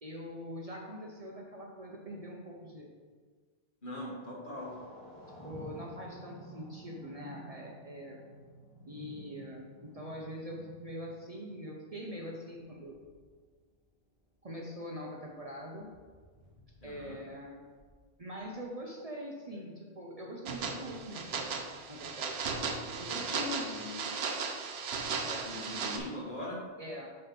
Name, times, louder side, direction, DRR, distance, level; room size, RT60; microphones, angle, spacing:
voice 1, 0.0-2.9 5.4-8.2 8.9-13.0 14.4-15.9 16.8-17.6 18.2-22.4 23.0-23.9 25.2-25.8 26.8-27.1, equal, 40° right, -1 dB, 0.7 m, -43 dB
voice 2, 3.8-4.7 16.8-17.2 23.6-24.0 25.4-26.6, left 1 dB, 50° left, -4 dB, 1.6 m, -41 dB
sound 1, 4.5-13.4 14.2-14.3 15.4-15.5 15.7-18.6, equal, 25° left, 2.0 m, -52 dB
sound 2, 20.5-26.0, right 5 dB, 75° right, 0.9 m, -36 dB
6.6 x 3.4 x 5.8 m, 1.6 s
omnidirectional pair, 1.1 m